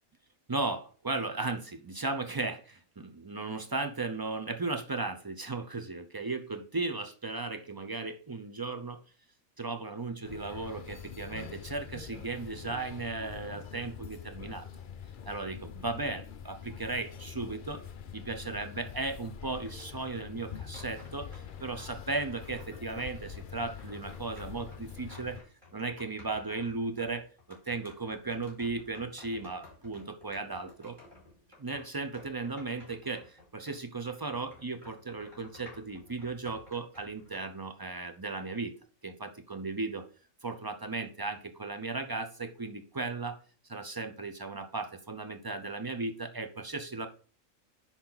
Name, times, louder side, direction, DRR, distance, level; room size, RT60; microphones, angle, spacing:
voice 1, 0.5-9.0 9.6-14.7 15.2-17.8 18.1-25.4 25.7-31.0 31.6-38.8 39.0-40.0 40.4-43.4 43.7-47.1, right 3 dB, 35° right, 7 dB, 0.3 m, -36 dB
sound 1, 10.2-25.4, left 7 dB, 50° left, 0.6 m, -45 dB
sound 2, 19.5-21.9 22.3-33.8 34.1-37.4, left 2 dB, 20° right, 4.4 m, -54 dB
10.5 x 4.1 x 4.0 m, 0.40 s
omnidirectional pair, 1.4 m